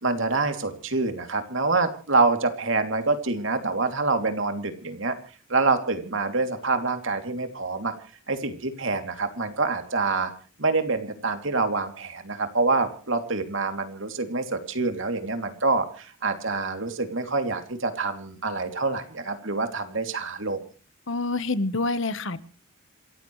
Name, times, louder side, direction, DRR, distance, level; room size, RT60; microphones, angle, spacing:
voice 1, 0.0-5.2 5.5-7.9 8.3-10.3 10.6-20.6, right 3 dB, 60° right, 7 dB, 2.9 m, -26 dB
voice 2, 21.1-22.4, left 3 dB, 60° left, 14 dB, 1.2 m, -27 dB
28.0 x 15.0 x 3.2 m, 0.38 s
head